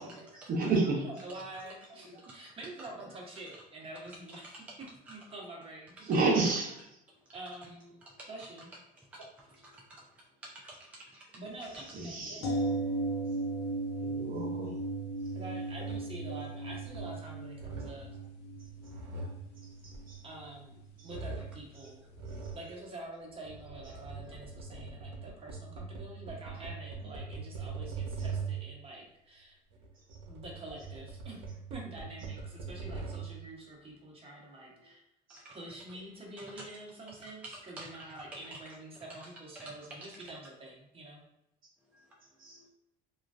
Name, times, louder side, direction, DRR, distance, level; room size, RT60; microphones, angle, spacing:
voice 1, 0.5-1.0 6.1-6.7 11.9-12.6 14.0-14.8 16.3-16.4 19.8-20.2 35.3-35.4 42.4-42.6, right 3 dB, 50° right, -2 dB, 0.8 m, -30 dB
voice 2, 1.0-4.7 5.1-6.1 7.3-8.0 8.3-8.7 11.3-12.8 15.3-18.1 20.2-22.1 22.5-29.6 30.3-31.4 31.7-35.0 35.5-41.2, right 2 dB, 30° right, -2 dB, 1.0 m, -47 dB
voice 3, 9.0-11.4 14.2-14.4 15.2-15.4 18.8-19.2 34.7-34.9 35.3-35.5 36.6-36.7 37.2-37.3 37.8-37.9 39.5-39.6 39.9-40.0 41.8-42.7, right 1 dB, 5° right, -3 dB, 0.4 m, -52 dB
sound 1, 12.4-22.3 22.6-22.7, right 2 dB, 60° left, 0.5 m, -37 dB
sound 2, 15.7-16.2 16.7-17.2 17.5-18.1 18.6-20.7 21.0-21.6 22.1-22.7 23.3-28.7 29.7-33.4, right 4 dB, 80° right, 0.7 m, -42 dB
3.0 x 2.4 x 2.5 m, 0.85 s
supercardioid pair, 100°, 19 cm